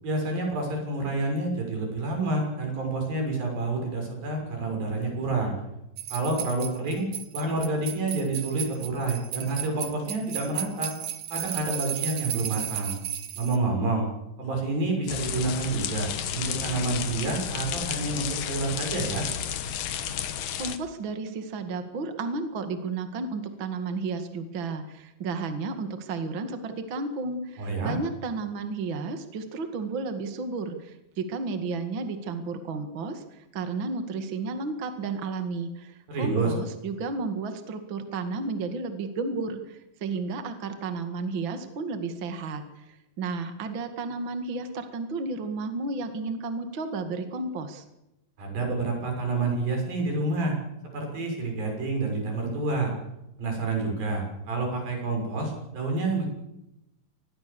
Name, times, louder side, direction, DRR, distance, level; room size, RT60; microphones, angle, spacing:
voice 1, 0.0-5.6 6.1-7.1 7.3-10.9 11.3-12.9 13.4-14.1 14.4-19.3 27.6-27.9 36.1-36.5 48.4-50.6 50.9-52.9 53.4-56.3, right 3 dB, 85° right, 2 dB, 8.4 m, -28 dB
sound 1, 6.0-13.6, right 11 dB, 60° right, 2.2 m, -34 dB
sound 2, 15.1-20.8, left 9 dB, 70° left, 2.9 m, -32 dB
voice 2, 20.6-47.8, right 3 dB, 40° right, 7 dB, 2.3 m, -32 dB
26.0 x 20.0 x 7.0 m, 0.88 s
omnidirectional pair, 4.0 m